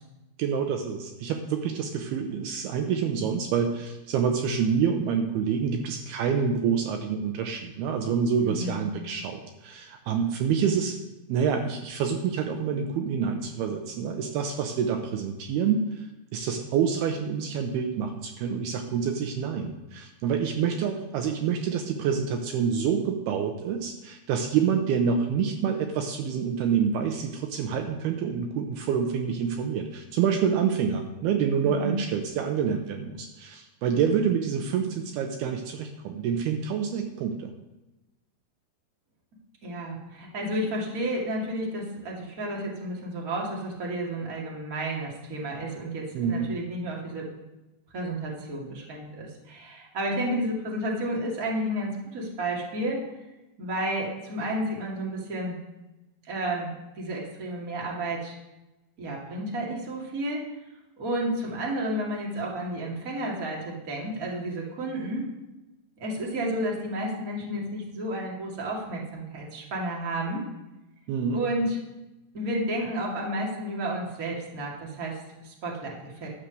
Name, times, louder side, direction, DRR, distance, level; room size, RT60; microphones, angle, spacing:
voice 1, 0.4-11.0 11.3-16.1 16.3-37.5 46.1-46.5 71.1-71.4, right 7 dB, 80° right, 5 dB, 2.6 m, -27 dB
voice 2, 8.4-8.8 31.6-32.0 39.6-47.3 47.9-53.0 53.6-55.6 56.3-58.3 59.0-60.5 61.0-65.3 66.0-70.4 71.3-71.8 72.3-76.3, right 1 dB, 30° right, -3 dB, 1.9 m, -31 dB
12.0 x 7.4 x 6.4 m, 1.0 s
omnidirectional pair, 5.0 m